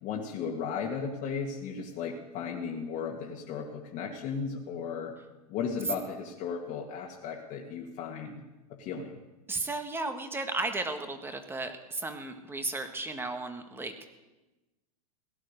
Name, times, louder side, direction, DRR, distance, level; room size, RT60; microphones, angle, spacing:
voice 1, 0.0-5.1 5.5-8.4 8.7-9.2, left 6 dB, 40° left, -1 dB, 2.0 m, -35 dB
voice 2, 9.5-14.0, right 2 dB, 10° right, 7 dB, 1.7 m, -34 dB
17.0 x 11.5 x 6.7 m, 1.1 s
hypercardioid pair, 110°, 20 cm